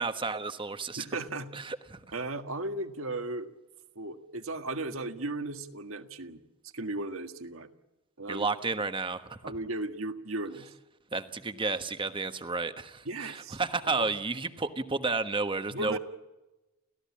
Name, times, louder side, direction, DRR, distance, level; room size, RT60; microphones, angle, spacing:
voice 1, 0.0-1.0 1.5-2.0 8.3-9.5 11.1-16.0, right 3 dB, 25° right, 9 dB, 1.3 m, -32 dB
voice 2, 1.0-1.5 2.1-3.5 3.9-6.4 6.7-7.7 8.2-8.5 9.4-10.7 13.0-13.6 13.9-14.1 15.7-16.0, right 2 dB, 70° right, 8 dB, 1.7 m, -36 dB
30.0 x 15.5 x 8.5 m, 1.0 s
head